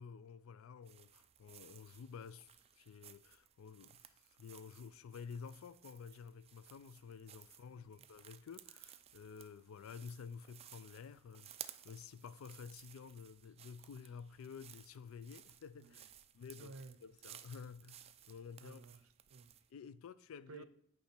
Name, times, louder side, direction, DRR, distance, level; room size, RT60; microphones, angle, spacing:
voice 1, 0.0-2.5 2.8-18.8 19.7-20.7, left 6 dB, 75° left, 0.4 m, -52 dB
sound 1, 0.8-19.7, right 11 dB, 30° right, 0.3 m, -58 dB
voice 2, 7.8-8.1 15.8-16.1 16.6-17.0 18.6-19.6 20.5-20.7, right 3 dB, 80° right, 0.5 m, -55 dB
8.4 x 3.2 x 5.9 m
head